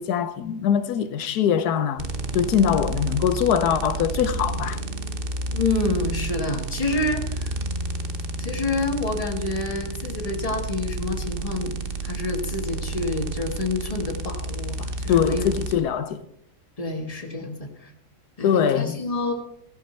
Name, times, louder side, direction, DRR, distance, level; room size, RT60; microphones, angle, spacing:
voice 1, 0.0-2.0 2.3-4.8 15.1-16.2 18.4-19.0, left 8 dB, 85° left, 1.3 m, -22 dB
sound 1, 2.0-15.7, right 2 dB, 40° right, 1.0 m, -30 dB
voice 2, 5.5-7.6 8.4-11.7 12.0-15.4 16.8-17.9 18.4-19.3, left 2 dB, 25° left, 1.7 m, -28 dB
15.5 x 14.0 x 4.4 m
omnidirectional pair, 1.6 m